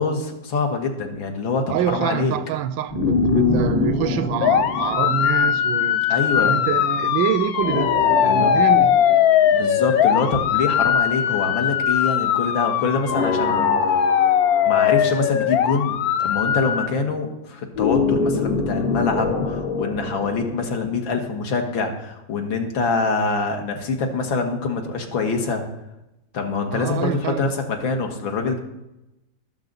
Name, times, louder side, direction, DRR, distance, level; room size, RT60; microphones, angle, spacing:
voice 1, 0.0-2.4 6.1-6.6 8.2-8.6 9.5-14.4 14.7-25.6 26.3-28.6, left 4 dB, 85° left, 2.4 m, -25 dB
voice 2, 1.7-6.0 6.4-9.1 26.7-27.5, right 10 dB, 85° right, 1.4 m, -26 dB
sound 1, 2.9-6.2 7.6-10.5 13.1-15.7 17.8-20.6, left 4 dB, 35° left, 0.6 m, -25 dB
sound 2, 4.4-16.9, left 9 dB, 65° left, 1.0 m, -20 dB
19.5 x 7.7 x 4.0 m
omnidirectional pair, 2.1 m